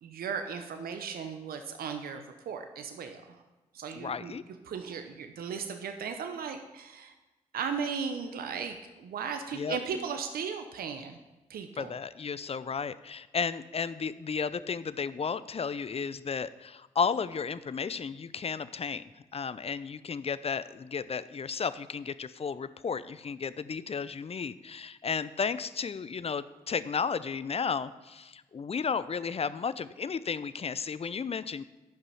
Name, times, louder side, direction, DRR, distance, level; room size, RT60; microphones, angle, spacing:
voice 1, 0.0-3.4 3.7-4.4 4.7-7.1 7.5-11.2 11.5-11.9, right 6 dB, 75° right, 6 dB, 0.8 m, -36 dB
voice 2, 4.0-4.4 9.5-9.8 11.8-19.0 19.3-31.6, left 6 dB, 40° left, 15 dB, 0.5 m, -33 dB
10.5 x 5.4 x 5.6 m, 1.1 s
supercardioid pair, 40°, 15 cm